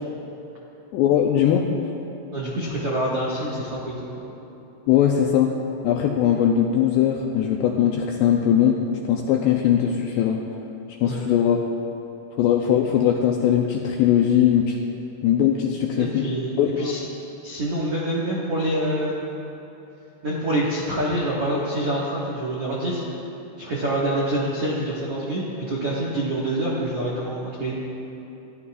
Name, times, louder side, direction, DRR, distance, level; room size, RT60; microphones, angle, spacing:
voice 1, 0.9-1.7 4.9-5.5 5.8-8.8 9.1-10.4 11.0-11.6 12.4-14.8 15.2-16.3 16.6-16.9, left 9 dB, 85° left, 1 dB, 2.5 m, -20 dB
voice 2, 2.3-4.2 11.0-11.3 15.9-17.0 17.4-19.4 20.2-23.0 23.6-27.8, right 1 dB, 70° right, -6 dB, 1.4 m, -26 dB
28.0 x 14.0 x 2.5 m, 2.9 s
omnidirectional pair, 5.6 m